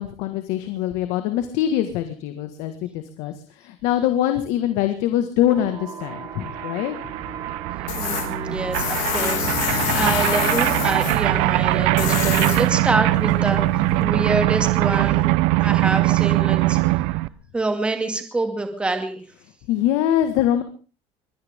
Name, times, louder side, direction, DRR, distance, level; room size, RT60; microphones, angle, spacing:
voice 1, 0.0-7.0 9.7-10.0 19.7-20.6, left 11 dB, 70° left, 8 dB, 1.9 m, -23 dB
sound 1, 5.5-13.5, right 8 dB, 40° right, 4.0 m, -37 dB
sound 2, 6.1-6.2 6.4-17.3, right 19 dB, 90° right, 0.8 m, -21 dB
Tools, 7.9-14.0, left 8 dB, 85° left, 3.7 m, -28 dB
voice 2, 8.0-15.2 15.6-17.0 17.5-19.2, right 2 dB, 10° right, 5 dB, 2.5 m, -26 dB
23.0 x 17.0 x 3.8 m, 0.36 s
cardioid pair, 175°, 12 cm